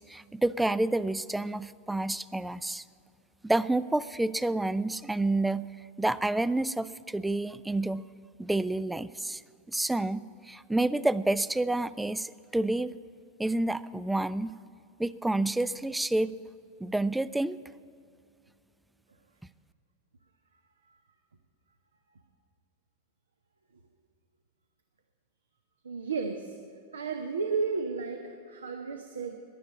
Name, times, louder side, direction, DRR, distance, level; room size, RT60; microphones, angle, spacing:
voice 1, 0.0-2.8 3.4-5.7 6.0-8.1 8.4-9.4 9.7-12.9 13.4-14.5 15.0-16.3 16.8-17.6, right 2 dB, 5° right, 18 dB, 0.3 m, -29 dB
voice 2, 25.8-26.6 26.9-29.4, right 4 dB, 75° right, 5 dB, 0.8 m, -33 dB
11.0 x 11.0 x 8.4 m, 2.5 s
figure-of-eight pair, 90°, 0 cm